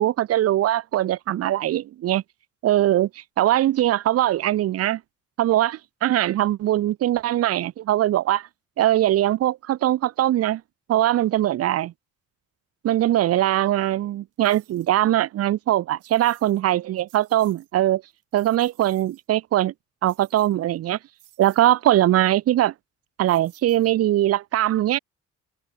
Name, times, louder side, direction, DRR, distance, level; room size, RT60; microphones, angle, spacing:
voice 1, 0.0-2.2 2.6-5.0 5.4-8.5 8.8-10.6 10.9-11.9 12.8-18.0 18.3-19.7 20.0-21.0 21.4-22.7 23.2-25.0, right 13 dB, 55° right, 0.5 m, -21 dB
sound 1, 14.4-14.9 16.0-16.6 17.0-17.7 18.1-19.3 20.1-20.8 21.2-21.7 23.3-24.1, right 14 dB, 85° right, 7.7 m, -55 dB
cardioid pair, 90°, 30 cm